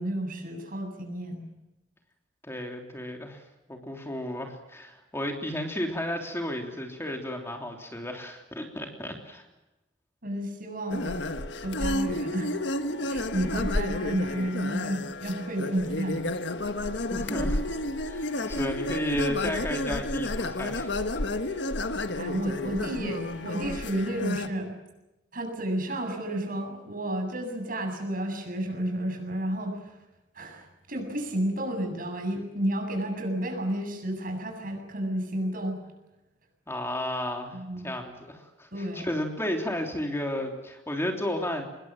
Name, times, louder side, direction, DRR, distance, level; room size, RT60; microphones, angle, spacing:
voice 1, 0.0-1.5 10.2-11.2 11.6-12.5 12.9-16.3 21.4-21.6 22.1-24.7 25.3-29.9 30.3-35.8 37.5-37.9 38.7-39.1, right 1 dB, 50° right, 5 dB, 7.8 m, -31 dB
voice 2, 2.4-3.4 3.7-9.5 17.0-17.6 18.0-20.9 36.7-37.6 37.8-41.7, left 1 dB, 15° left, 2 dB, 3.3 m, -33 dB
sound 1, 10.9-24.5, left 2 dB, 75° left, 1.6 m, -31 dB
26.5 x 21.5 x 7.6 m, 0.99 s
head